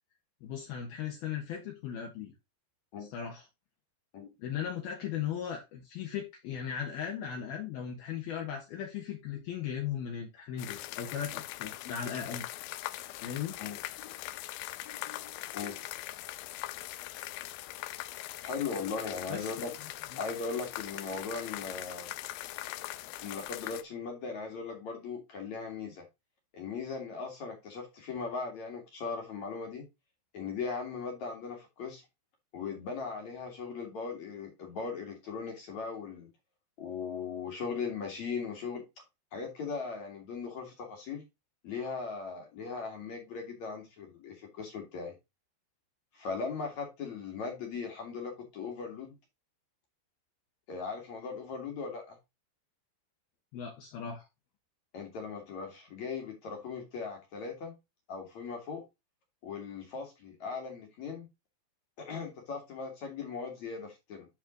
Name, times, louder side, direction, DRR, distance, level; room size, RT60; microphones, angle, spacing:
voice 1, 0.4-2.3 3.0-3.5 4.4-12.5 13.2-13.6 19.3-19.5 20.1-20.2 53.5-54.3, left 8 dB, 70° left, 1 dB, 2.8 m, -37 dB
sound 1, 10.6-23.8, left 16 dB, 90° left, 2.2 m, -41 dB
voice 2, 14.8-15.8 18.4-19.7 20.2-22.1 23.2-26.0 26.5-29.8 30.3-32.0 32.5-36.3 36.8-38.8 39.3-41.2 41.6-45.1 46.1-49.2 50.7-52.2 54.9-57.8 58.1-58.8 59.4-61.3 62.0-64.3, left 5 dB, 50° left, 3 dB, 2.7 m, -38 dB
10.5 x 4.3 x 3.8 m, 0.23 s
omnidirectional pair, 5.2 m